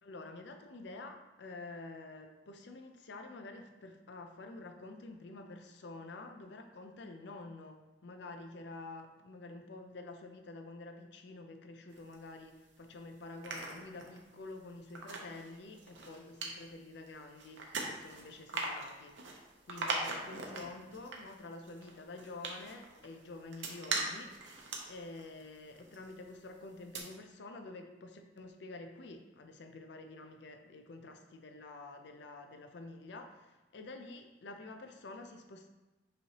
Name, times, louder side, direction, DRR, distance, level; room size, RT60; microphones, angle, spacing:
voice 1, 0.0-35.7, left 2 dB, 65° left, 5 dB, 0.5 m, -49 dB
sound 1, 11.9-12.8 13.2-26.4 26.7-27.0, right 3 dB, 90° right, 0.7 m, -42 dB
5.4 x 3.1 x 2.9 m, 1.1 s
head